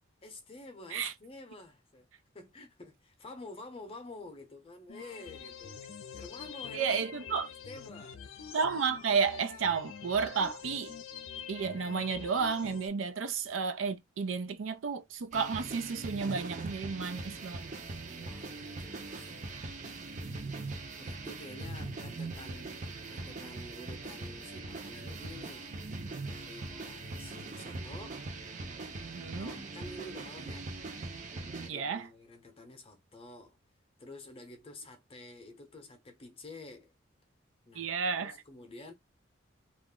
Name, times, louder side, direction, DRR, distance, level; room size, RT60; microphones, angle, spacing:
voice 1, 0.2-2.1 2.3-5.8 6.1-8.2 17.9-19.3 21.0-25.7 26.2-28.2 29.3-30.7 31.5-33.6 34.0-36.9 37.7-38.9, left 2 dB, 30° left, 0.7 m, -49 dB
sound 1, 4.9-12.9, left 7 dB, 85° left, 0.5 m, -46 dB
voice 2, 6.7-7.5 8.5-10.9 11.5-17.6 29.1-29.5 31.7-32.1 37.8-38.4, right 5 dB, 90° right, 0.5 m, -32 dB
sound 2, 15.3-31.7, right 3 dB, 40° right, 0.6 m, -41 dB
2.4 x 2.0 x 3.6 m
head